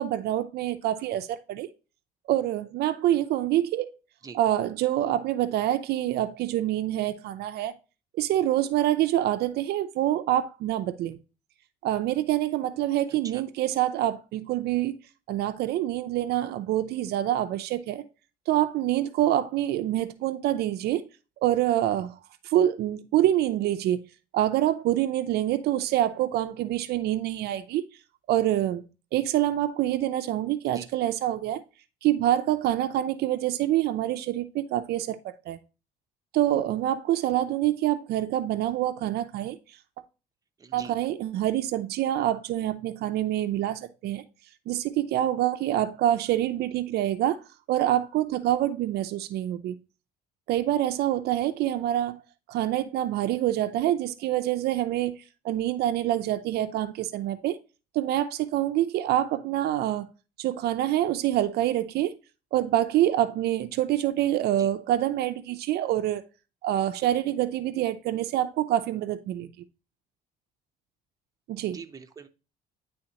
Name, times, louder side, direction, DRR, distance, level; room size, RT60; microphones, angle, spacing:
voice 1, 0.0-1.7 2.3-3.9 4.3-7.7 8.1-11.2 11.8-15.0 15.3-18.0 18.5-21.1 21.4-22.1 22.4-24.0 24.3-27.8 28.3-28.8 29.1-31.6 32.0-35.6 36.3-39.6 40.7-44.2 44.7-47.4 47.7-49.8 50.5-52.2 52.5-55.2 55.4-57.6 57.9-60.1 60.4-62.1 62.5-66.2 66.6-69.5 71.5-71.8, right 13 dB, 70° right, 0.5 m, -26 dB
voice 2, 40.6-40.9 64.6-64.7 71.7-72.3, right 5 dB, 20° right, 0.7 m, -43 dB
9.9 x 3.5 x 2.9 m
cardioid pair, 110°, 17 cm